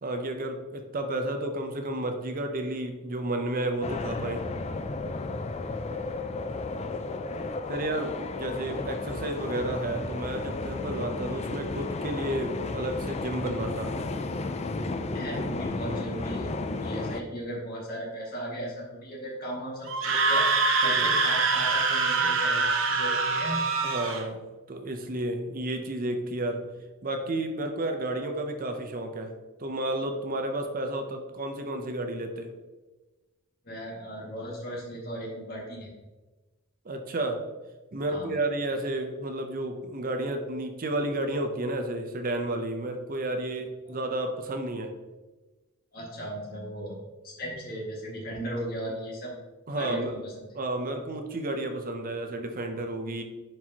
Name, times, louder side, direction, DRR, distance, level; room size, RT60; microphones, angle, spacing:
voice 1, 0.0-4.4 7.7-13.9 20.8-21.1 23.8-24.4 24.7-26.6 27.0-29.3 29.6-32.5 36.8-37.4 37.9-44.9 49.7-50.1 50.5-53.2, right 1 dB, 45° right, 5 dB, 0.7 m, -31 dB
sound 1, 3.8-17.2, left 3 dB, 30° left, 0.4 m, -33 dB
voice 2, 15.1-16.5 16.8-20.4 20.8-23.7 33.6-35.9 38.1-38.3 43.9-44.0 45.9-47.0 47.2-49.3 49.8-50.4, equal, 45° left, -3 dB, 2.1 m, -36 dB
Screaming, 19.9-24.2, right 4 dB, 65° right, 0.9 m, -24 dB
10.0 x 4.6 x 2.9 m, 1.2 s
head